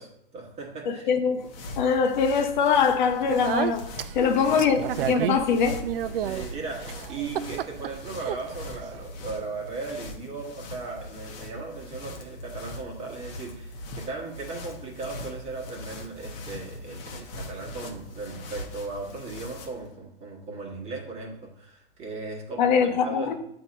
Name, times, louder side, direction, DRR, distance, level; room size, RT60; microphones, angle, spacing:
voice 1, 0.0-1.1 4.3-4.5 6.2-22.7 23.0-23.4, right 3 dB, 20° right, 1.5 m, -37 dB
voice 2, 0.9-1.5 1.8-3.8 4.1-4.8 5.1-5.8 22.6-23.4, left 6 dB, 55° left, 0.7 m, -22 dB
sound 1, 1.1-19.9, left 1 dB, 35° left, 1.0 m, -41 dB
Speech, 3.0-9.1, right 10 dB, 70° right, 0.4 m, -32 dB
8.0 x 2.9 x 5.3 m
hypercardioid pair, 135°, 29 cm